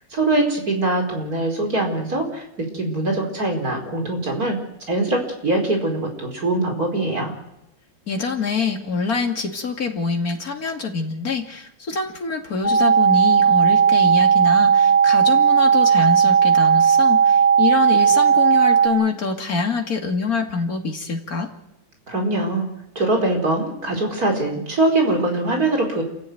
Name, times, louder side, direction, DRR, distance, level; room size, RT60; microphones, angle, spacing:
voice 1, 0.1-4.6 4.9-7.3 22.1-22.7 22.9-26.0, right 2 dB, 50° right, 2 dB, 4.9 m, -22 dB
voice 2, 8.1-21.5, left 5 dB, 50° left, 2 dB, 3.0 m, -25 dB
sound 1, 12.6-18.9, right 7 dB, 35° right, 4.7 m, -15 dB
28.0 x 15.0 x 9.4 m, 0.91 s
omnidirectional pair, 1.9 m